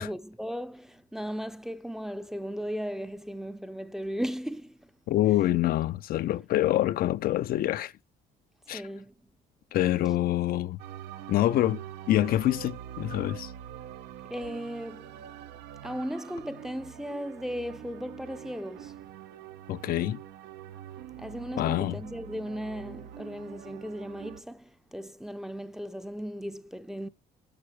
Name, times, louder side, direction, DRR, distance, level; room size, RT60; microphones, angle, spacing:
voice 1, 0.0-4.9 8.7-9.1 14.3-15.1 15.8-19.0 21.2-27.1, equal, 5° right, 0.5 m, -36 dB
voice 2, 5.1-7.9 8.7-8.8 9.7-10.8 11.3-13.5 19.7-20.2 21.6-22.0, left 14 dB, 60° left, 0.5 m, -26 dB
sound 1, 10.8-24.4, right 10 dB, 80° right, 0.8 m, -44 dB
8.7 x 8.7 x 3.3 m
cardioid pair, 110°, 17 cm